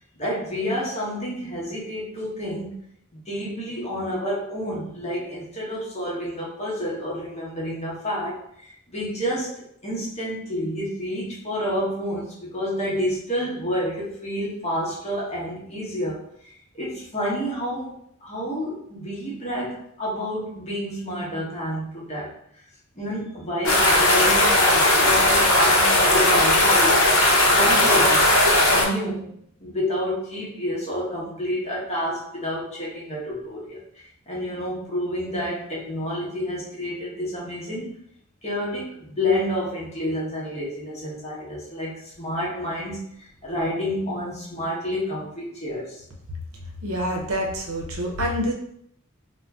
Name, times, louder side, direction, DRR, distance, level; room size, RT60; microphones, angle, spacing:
voice 1, 0.2-2.7 3.1-22.3 23.0-27.1 27.4-28.3 28.7-29.3 29.6-38.0 38.4-46.0, equal, 30° left, -5 dB, 0.9 m, -29 dB
sound 1, 23.6-28.8, left 1 dB, 75° left, 0.7 m, -17 dB
voice 2, 46.8-48.5, equal, 75° right, 0 dB, 0.6 m, -26 dB
2.5 x 2.2 x 3.4 m, 0.70 s
head